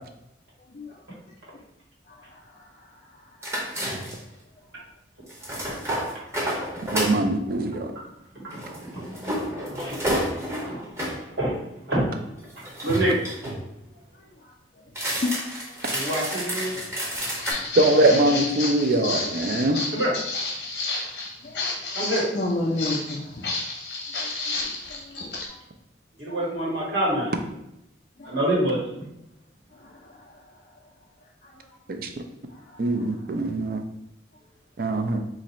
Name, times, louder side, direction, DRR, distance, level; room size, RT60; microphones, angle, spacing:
voice 1, 2.1-3.1 9.9-10.0 14.4-14.5 15.2-16.0 19.5-19.7 21.4-21.6 22.3-23.6 24.2-24.3 24.9-25.6 28.2-28.3 29.7-30.4 31.4-31.5 32.5-33.2, left 2 dB, 40° left, -4 dB, 0.4 m, -33 dB
sound 1, 3.4-4.3 5.3-7.2 8.5-11.2 12.4-13.6 14.9-17.5, equal, 15° right, 0.7 m, -30 dB
voice 2, 6.9-7.9 17.8-19.8 31.9-32.1 32.8-33.8 34.8-35.2, right 1 dB, 50° right, 6 dB, 0.4 m, -22 dB
voice 3, 7.7-8.1 8.3-12.3 12.6-13.2 15.9-16.7 18.9-19.0 19.9-20.1 21.9-22.2 26.2-27.3 28.2-28.8, right 1 dB, 80° right, -5 dB, 1.4 m, -28 dB
Walk footsteps, 17.2-25.5, left 3 dB, 55° left, 0.8 m, -31 dB
2.9 x 2.6 x 4.1 m, 0.85 s
head